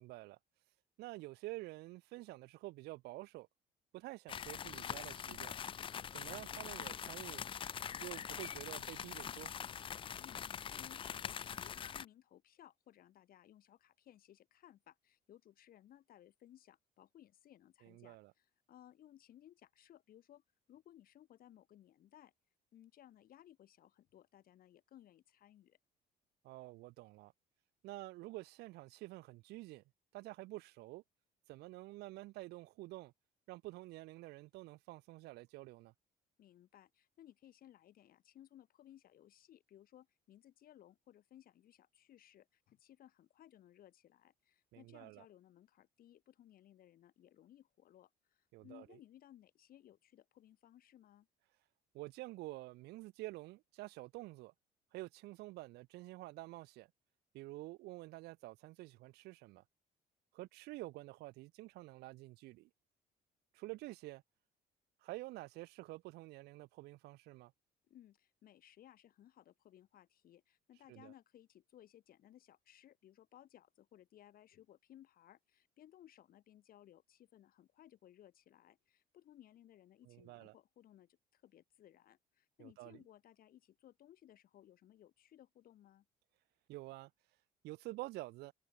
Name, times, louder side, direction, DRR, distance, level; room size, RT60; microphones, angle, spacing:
voice 1, 0.0-3.5 3.9-5.6 6.1-7.5 8.0-9.5 17.8-18.3 26.4-27.3 27.8-29.8 30.1-31.0 31.5-33.1 33.5-35.9 44.7-45.3 48.5-49.0 51.9-54.5 54.9-56.9 57.3-59.6 60.3-62.7 63.5-64.2 65.0-67.5 70.7-71.1 80.1-80.5 82.6-83.0 86.7-88.5, right 19 dB, 75° right, 0.4 m, -49 dB
sound 1, 4.3-12.1, left 8 dB, 30° left, 0.4 m, -44 dB
voice 2, 10.2-20.4 20.7-22.3 22.7-25.8 36.4-51.3 67.9-86.1, left 12 dB, 60° left, 1.7 m, -62 dB
cardioid pair, 110°, 17 cm